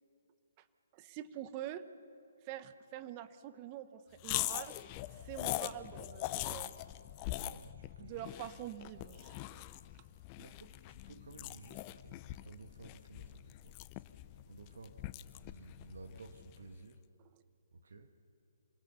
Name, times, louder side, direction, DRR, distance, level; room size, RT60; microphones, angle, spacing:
voice 1, 0.9-1.8 2.4-4.8 5.1-6.7 8.0-9.4 17.3-17.4, right 12 dB, 30° right, 13 dB, 1.0 m, -45 dB
sound 1, 4.2-16.7, left 16 dB, 30° left, 0.6 m, -42 dB
voice 2, 7.3-8.3 8.8-8.9 10.4-13.9 14.5-15.0 15.4-17.0 17.7-18.2, right 3 dB, 75° right, 7 dB, 1.4 m, -54 dB
26.0 x 18.0 x 6.9 m, 2.6 s
hypercardioid pair, 140°, 0 cm